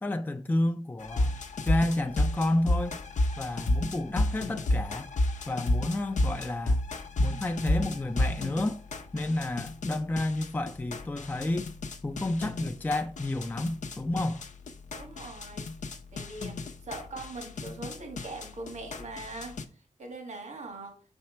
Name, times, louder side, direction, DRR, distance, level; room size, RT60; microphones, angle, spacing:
voice 1, 0.0-1.4 1.6-3.0 3.4-5.1 5.5-6.8 7.2-8.8 9.1-11.7 12.0-14.4, left 1 dB, 15° left, 0.4 m, -30 dB
sound 1, 1.0-19.6, left 1 dB, 85° left, 0.6 m, -31 dB
voice 2, 14.9-16.6 16.8-19.6 20.0-21.0, right 2 dB, 70° right, 1.5 m, -42 dB
5.7 x 4.4 x 4.3 m
wide cardioid pair, 105°, 12 cm